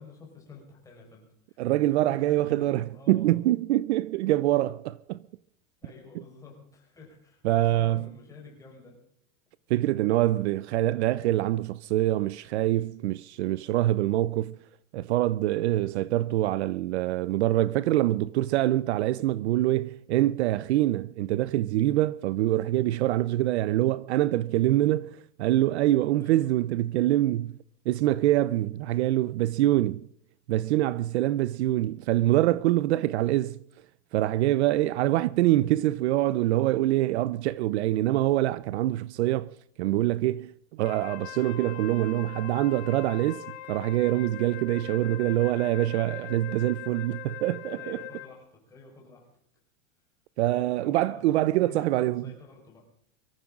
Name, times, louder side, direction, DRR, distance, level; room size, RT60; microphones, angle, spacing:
voice 1, 0.0-3.4 5.8-9.1 26.2-26.6 47.7-49.3 50.4-52.9, left 4 dB, 10° left, 4.8 m, -49 dB
voice 2, 1.6-5.2 7.4-8.1 9.7-14.6 14.9-27.6 27.9-30.1 30.5-33.6 34.1-39.5 39.8-48.0 50.4-52.3, right 15 dB, 60° right, 0.6 m, -25 dB
Wind instrument woodwind instrument, 40.8-48.4, left 13 dB, 55° left, 4.3 m, -41 dB
24.0 x 14.5 x 3.7 m
supercardioid pair, 175°, 38 cm